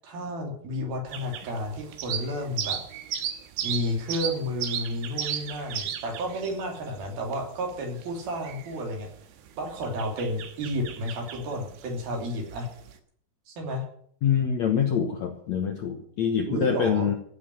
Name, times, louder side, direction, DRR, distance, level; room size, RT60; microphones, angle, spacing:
voice 1, 0.0-2.8 3.6-9.1 9.6-12.7 13.5-13.8 16.5-17.1, equal, 65° right, 1 dB, 4.8 m, -31 dB
sound 1, 1.1-13.0, right 9 dB, 85° right, 3.5 m, -36 dB
voice 2, 14.2-17.1, left 8 dB, 65° left, 4 dB, 1.8 m, -25 dB
15.0 x 7.6 x 9.3 m, 0.63 s
omnidirectional pair, 4.8 m